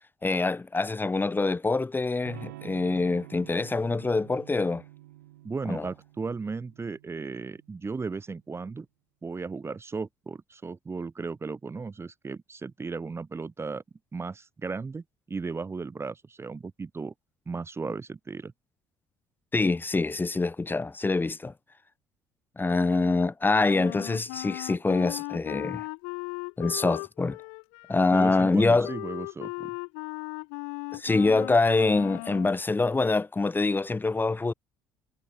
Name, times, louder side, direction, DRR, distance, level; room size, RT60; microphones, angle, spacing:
voice 1, 0.2-4.8 5.6-5.9 19.5-21.5 22.6-25.8 26.6-27.4 27.9-28.9 30.9-34.5, left 3 dB, 20° left, 2.8 m, -25 dB
Electric guitar / Strum, 2.2-8.0, right 17 dB, 90° right, 3.1 m, -49 dB
voice 2, 5.4-8.9 9.2-13.8 14.1-17.1 17.5-18.5 28.1-29.7, right 4 dB, 25° right, 1.7 m, -35 dB
Wind instrument woodwind instrument, 23.7-32.6, left 39 dB, 80° left, 3.3 m, -38 dB
hypercardioid pair, 65°, 9 cm